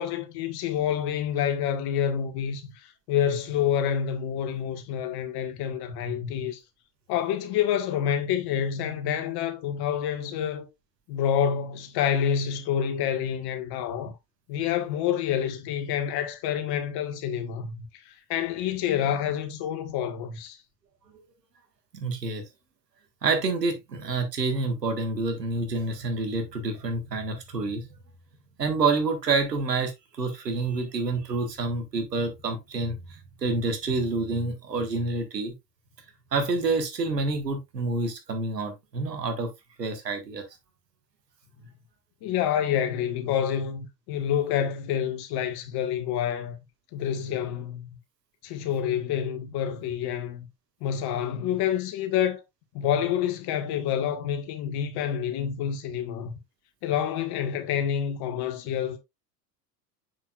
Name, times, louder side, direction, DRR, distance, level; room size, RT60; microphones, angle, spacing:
voice 1, 0.0-6.6 7.1-10.7 11.1-14.1 14.5-20.6 42.2-46.6 46.9-47.9 48.4-50.5 50.8-52.4 52.7-56.3 56.8-59.0, left 9 dB, 50° left, 1.7 m, -28 dB
voice 2, 21.9-22.4 23.2-27.9 28.6-35.5 36.3-39.5 39.8-40.4, right 3 dB, 85° right, 1.7 m, -28 dB
7.2 x 6.2 x 2.4 m
figure-of-eight pair, 70°, 48 cm